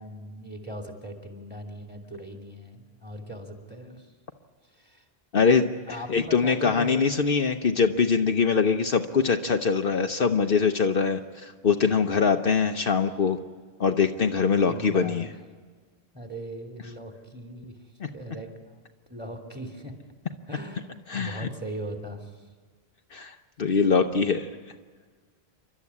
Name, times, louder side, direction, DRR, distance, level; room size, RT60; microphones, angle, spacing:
voice 1, 0.0-4.1 4.7-5.0 5.9-6.9 14.7-15.3 16.1-17.8 18.1-18.8 19.1-19.9 20.5-20.9 21.1-22.5 23.7-23.8, right 1 dB, 10° right, 2 dB, 2.8 m, -39 dB
voice 2, 5.3-13.4 13.8-15.2 18.0-18.1 21.1-21.5 23.1-24.5, left 5 dB, 60° left, 6 dB, 1.1 m, -23 dB
29.0 x 12.5 x 9.7 m, 1.5 s
omnidirectional pair, 1.1 m